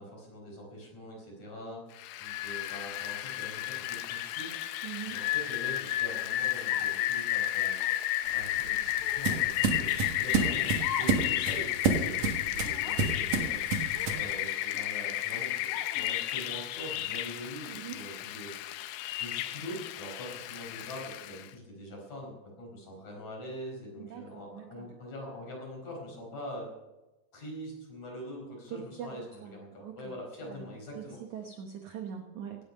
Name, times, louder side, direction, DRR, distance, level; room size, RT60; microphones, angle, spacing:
voice 1, 0.0-1.8 2.2-4.8 5.1-7.7 8.3-18.5 19.2-26.7 27.3-31.2, equal, 40° left, -1 dB, 5.7 m, -43 dB
Rain, 2.0-21.5, left 14 dB, 80° left, 2.6 m, -32 dB
voice 2, 4.8-5.2 17.7-18.0 24.0-24.9 28.7-29.6 29.8-30.1 30.5-30.6 31.0-31.1 31.3-32.6, right 8 dB, 75° right, 3 dB, 1.7 m, -42 dB
sound 1, 6.7-7.1 7.8-8.0 9.0-9.4 10.7-11.3 11.6-11.7 12.6-13.0 13.9-14.8 15.7-16.1, left 7 dB, 65° left, 2.3 m, -42 dB
sound 2, 8.3-14.3, right 5 dB, 60° right, 1.8 m, -30 dB
17.0 x 11.0 x 5.4 m, 1.1 s
omnidirectional pair, 5.2 m